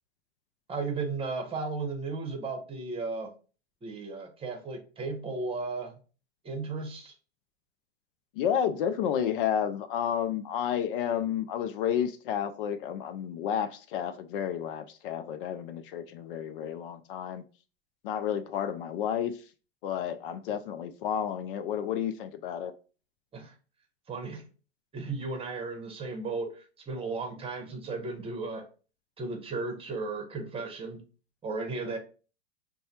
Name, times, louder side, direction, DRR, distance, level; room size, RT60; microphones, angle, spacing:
voice 1, 0.7-3.3 3.8-5.9 6.4-7.1 23.3-23.5 24.1-24.5 24.9-28.6 29.2-31.0 31.4-32.0, right 3 dB, 20° right, 1.1 m, -35 dB
voice 2, 8.4-17.4 18.0-19.4 19.8-22.7, left 9 dB, 60° left, 0.5 m, -31 dB
6.4 x 2.3 x 2.9 m
hypercardioid pair, 110°, 31 cm